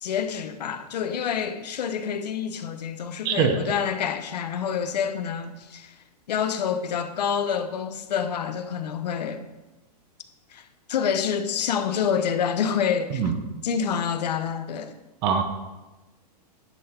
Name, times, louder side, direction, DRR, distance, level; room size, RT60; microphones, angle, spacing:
voice 1, 0.0-6.0 6.3-9.4 10.5-13.2 13.6-14.9, left 7 dB, 75° left, 0.9 m, -27 dB
voice 2, 3.2-3.6 13.1-13.3 15.2-15.4, right 6 dB, 20° right, 0.6 m, -22 dB
10.0 x 5.9 x 4.4 m
supercardioid pair, 170°, 21 cm